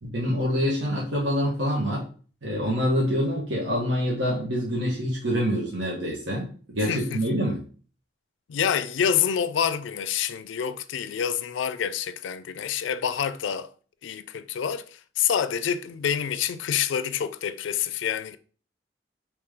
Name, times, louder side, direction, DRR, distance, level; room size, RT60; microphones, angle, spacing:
voice 1, 0.0-2.0 2.4-7.6, equal, 90° right, 1.1 m, -26 dB
voice 2, 6.8-7.5 8.5-13.7 14.0-18.4, left 8 dB, 85° left, 0.4 m, -27 dB
4.9 x 3.0 x 3.5 m
head